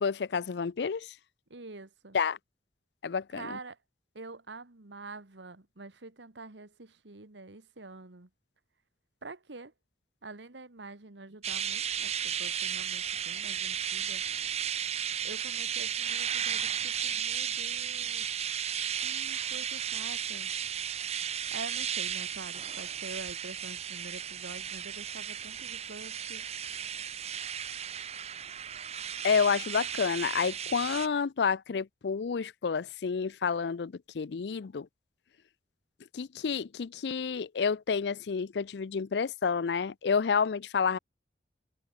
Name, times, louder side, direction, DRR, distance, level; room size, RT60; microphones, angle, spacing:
voice 1, 0.0-1.1 2.1-2.4 3.0-3.6 29.2-34.9 36.1-41.0, left 6 dB, 75° left, 0.5 m, -29 dB
voice 2, 1.5-2.2 3.3-3.8 4.2-8.3 9.2-9.7 10.2-14.2 15.2-18.3 19.0-20.5 21.5-26.5, right 3 dB, 90° right, 1.7 m, -46 dB
sound 1, 11.4-31.1, right 9 dB, 35° right, 0.9 m, -34 dB
head